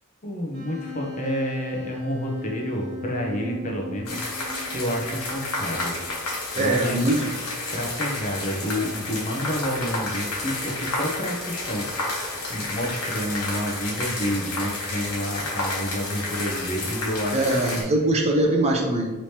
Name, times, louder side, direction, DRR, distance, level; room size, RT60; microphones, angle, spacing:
voice 1, 0.2-4.2 4.7-5.9 6.5-7.0 7.7-11.9 12.5-17.5 17.7-17.9, equal, 35° left, 0 dB, 0.8 m, -29 dB
Wind instrument woodwind instrument, 0.5-6.2, left 2 dB, 50° right, 1.3 m, -37 dB
sound 1, 4.0-17.8, left 2 dB, 80° left, 1.1 m, -31 dB
voice 2, 6.6-7.4 17.3-19.1, right 1 dB, 30° right, 1 dB, 0.6 m, -22 dB
4.9 x 3.2 x 2.8 m, 1.2 s
head